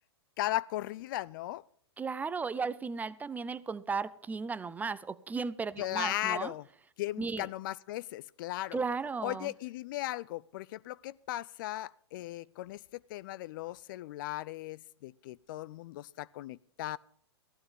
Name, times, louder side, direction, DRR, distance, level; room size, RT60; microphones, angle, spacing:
voice 1, 0.4-1.6 5.8-6.6 7.0-8.8 9.2-12.8 13.1-17.0, left 16 dB, 50° left, 0.4 m, -37 dB
voice 2, 2.0-6.5 7.2-7.5 8.7-9.5, right 5 dB, 10° right, 0.5 m, -35 dB
15.0 x 14.5 x 3.6 m
hypercardioid pair, 110°, 14 cm